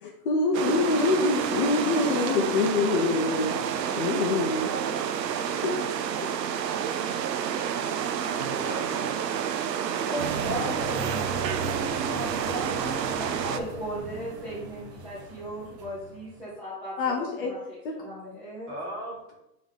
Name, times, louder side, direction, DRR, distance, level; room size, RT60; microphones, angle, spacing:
voice 1, 0.0-3.5 4.0-4.7 5.5-5.7 17.0-17.5 17.8-17.9, left 3 dB, 35° left, 0 dB, 0.7 m, -25 dB
sound 1, 0.5-13.6, right 8 dB, 85° right, 0.8 m, -29 dB
voice 2, 8.3-9.3 18.7-19.3, right 1 dB, 20° right, -2 dB, 1.3 m, -38 dB
voice 3, 10.0-17.8 18.0-18.7, equal, 5° right, -11 dB, 0.6 m, -37 dB
sound 2, 10.2-16.4, right 3 dB, 45° right, 0.7 m, -37 dB
7.1 x 3.8 x 3.6 m, 0.86 s
hypercardioid pair, 165°, 49 cm